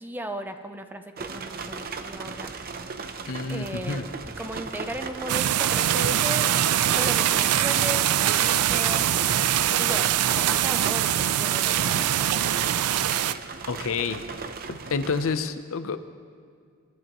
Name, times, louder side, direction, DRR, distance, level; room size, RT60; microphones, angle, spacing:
voice 1, 0.0-2.5 3.4-6.5 7.0-9.2 9.8-12.3, right 1 dB, 10° right, 7 dB, 0.6 m, -36 dB
sound 1, 1.2-15.3, right 4 dB, 45° right, 0.7 m, -37 dB
voice 2, 3.3-4.0 13.7-14.2 14.7-16.0, left 4 dB, 65° left, 10 dB, 0.7 m, -29 dB
sound 2, 5.3-13.3, right 11 dB, 85° right, 0.4 m, -23 dB
27.5 x 12.5 x 3.0 m, 2.2 s
head